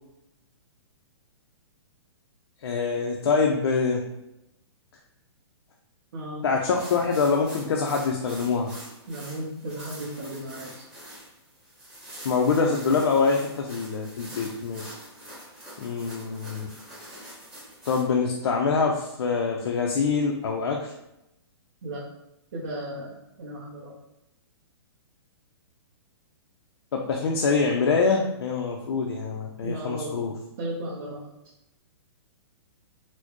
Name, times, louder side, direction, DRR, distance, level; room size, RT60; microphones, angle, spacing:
voice 1, 2.6-4.0 6.4-8.7 12.2-15.0 15.8-16.7 17.9-20.9 26.9-30.3, left 4 dB, 70° left, 1 dB, 0.5 m, -25 dB
voice 2, 6.1-6.5 9.1-10.8 21.8-22.0 22.5-23.9 29.6-30.2 30.6-31.2, right 1 dB, 50° right, -6 dB, 0.9 m, -35 dB
sound 1, 6.7-18.0, right 1 dB, 5° right, 0.9 m, -45 dB
4.2 x 2.1 x 2.9 m, 0.87 s
hypercardioid pair, 170°, 14 cm